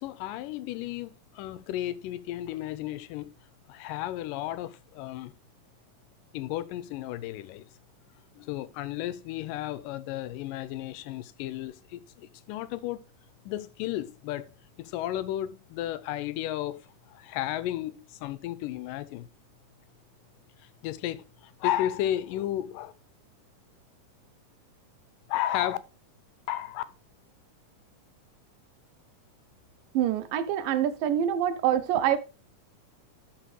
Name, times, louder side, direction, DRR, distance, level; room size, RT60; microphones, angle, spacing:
voice 1, 0.0-3.3 3.7-5.3 6.3-7.6 8.4-13.0 13.5-14.5 14.8-16.8 17.1-19.3 20.8-21.2 21.6-22.9 25.3-25.8 26.5-26.8, left 13 dB, 85° left, 2.3 m, -33 dB
voice 2, 29.9-32.2, right 10 dB, 90° right, 2.5 m, -25 dB
12.5 x 5.0 x 3.2 m
omnidirectional pair, 3.8 m